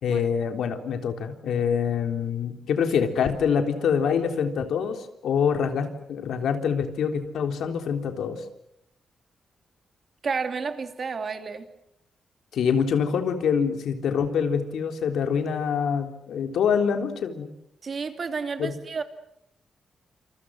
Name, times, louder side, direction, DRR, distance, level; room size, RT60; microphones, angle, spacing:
voice 1, 0.0-8.4 12.5-17.5 18.6-18.7, left 7 dB, 85° left, 6 dB, 3.6 m, -25 dB
voice 2, 10.2-11.7 17.8-19.0, right 5 dB, 45° right, 7 dB, 2.9 m, -31 dB
29.0 x 27.5 x 6.4 m, 0.76 s
cardioid pair, 120°, 0 cm